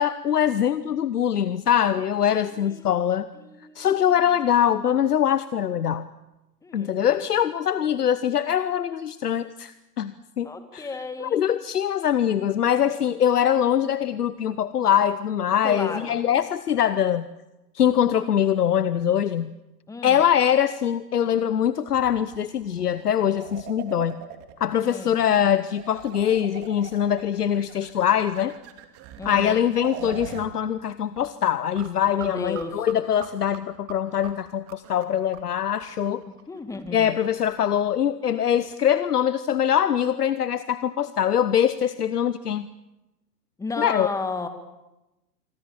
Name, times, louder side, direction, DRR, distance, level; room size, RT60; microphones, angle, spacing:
voice 1, 0.0-3.3 3.7-6.1 6.7-10.9 11.2-17.3 17.7-19.5 20.0-24.2 24.6-28.5 29.2-36.2 36.9-42.7 43.8-44.1, left 9 dB, 65° left, 15 dB, 1.0 m, -23 dB
voice 2, 2.5-3.0 3.3-4.2 6.6-7.0 7.8-8.0 10.4-11.5 15.6-16.2 19.9-20.2 24.8-25.2 29.2-29.6 32.1-32.9 36.3-37.1 43.6-44.5, left 3 dB, 5° left, 9 dB, 2.0 m, -34 dB
sound 1, 21.9-25.0 25.3-25.4 25.7-30.5 30.8-30.9 31.2-37.7, right 11 dB, 30° right, 2.6 m, -42 dB
26.0 x 24.5 x 7.4 m, 1.0 s
figure-of-eight pair, 115°, 49 cm